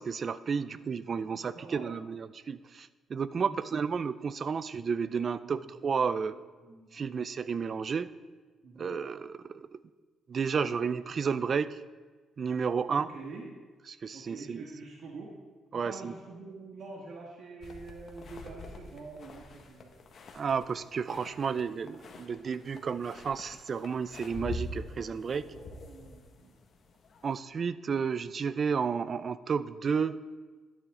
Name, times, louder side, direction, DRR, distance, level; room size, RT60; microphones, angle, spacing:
voice 1, 0.0-6.3 6.9-8.1 8.8-9.8 10.3-11.8 12.4-13.1 13.9-14.7 15.7-16.1 20.3-25.5 27.2-30.2, right 6 dB, 45° right, 16 dB, 0.4 m, -32 dB
voice 2, 1.2-1.9 3.4-3.6 5.4-5.6 6.3-7.1 8.6-8.8 13.0-13.4 14.1-15.3 15.7-19.9 25.3-26.5, right 3 dB, 60° right, -1 dB, 1.6 m, -46 dB
sound 1, 17.6-27.4, left 2 dB, 55° left, 1.5 m, -46 dB
12.0 x 9.8 x 3.8 m, 1.4 s
cardioid pair, 90°, 0 cm